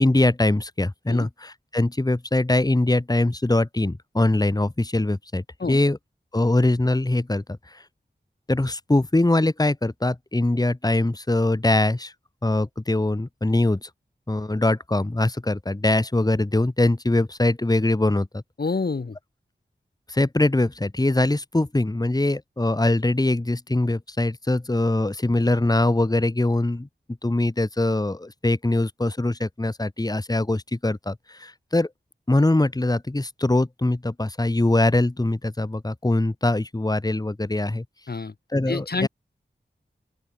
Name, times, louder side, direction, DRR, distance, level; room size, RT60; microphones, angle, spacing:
voice 1, 0.0-6.0 6.3-7.8 8.5-12.1 12.4-13.9 14.3-18.4 20.1-26.9 27.2-31.9 32.3-37.8 38.5-39.1, left 2 dB, 20° left, 1.6 m, -22 dB
voice 2, 18.6-19.2 38.1-38.3 38.7-39.1, left 4 dB, 55° left, 1.5 m, -27 dB
open air
wide cardioid pair, 65°, 19 cm